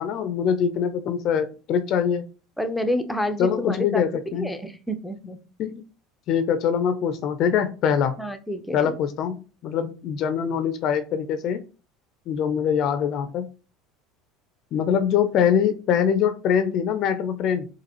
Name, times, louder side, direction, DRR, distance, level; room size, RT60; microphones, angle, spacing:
voice 1, 0.0-2.2 3.4-4.5 5.6-5.8 6.3-8.1 8.7-9.4 9.6-11.6 12.3-13.5 14.7-17.7, left 8 dB, 55° left, 10 dB, 0.4 m, -23 dB
voice 2, 2.6-5.4 8.2-8.9, left 1 dB, 5° left, 8 dB, 0.6 m, -29 dB
3.9 x 2.6 x 2.9 m, 0.33 s
supercardioid pair, 95°, 0 cm